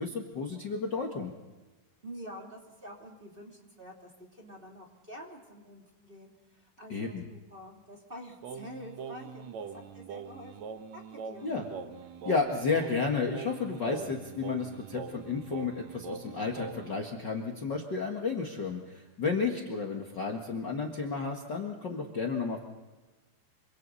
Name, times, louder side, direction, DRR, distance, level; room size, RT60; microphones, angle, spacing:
voice 1, 0.0-1.3 6.9-7.2 11.4-11.6 12.2-22.6, left 4 dB, 70° left, 1 dB, 1.0 m, -32 dB
voice 2, 2.0-11.5, equal, 15° right, -1 dB, 2.6 m, -48 dB
Singing, 8.4-17.0, right 6 dB, 80° right, 1.5 m, -43 dB
27.5 x 25.5 x 4.2 m, 1.2 s
omnidirectional pair, 5.0 m